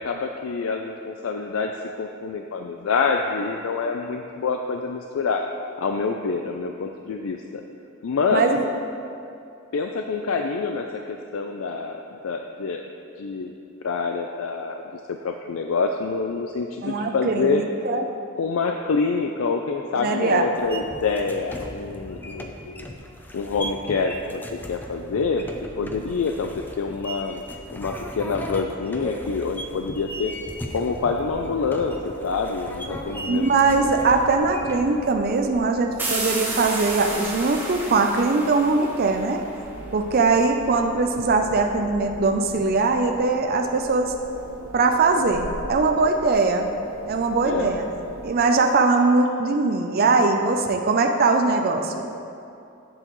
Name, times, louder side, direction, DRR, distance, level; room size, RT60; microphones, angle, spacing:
voice 1, 0.0-1.7 2.0-5.5 5.8-7.6 8.0-8.5 9.7-12.8 13.2-13.6 13.8-17.6 18.3-23.0 23.3-27.4 27.7-30.4 30.7-33.5 47.4-47.7, left 4 dB, 75° left, 4 dB, 0.4 m, -26 dB
voice 2, 8.3-8.6 16.8-18.1 20.0-20.5 20.7-20.8 33.2-39.4 39.9-44.1 44.7-46.7 47.1-47.8 48.2-52.0, right 3 dB, 45° right, 4 dB, 0.5 m, -21 dB
sound 1, 20.6-35.0, equal, 10° left, 0.5 m, -37 dB
Wind, 29.6-48.7, right 2 dB, 80° right, 0.7 m, -40 dB
sound 2, 36.0-39.6, right 2 dB, 10° right, 1.2 m, -31 dB
11.5 x 7.9 x 3.1 m, 2.7 s
head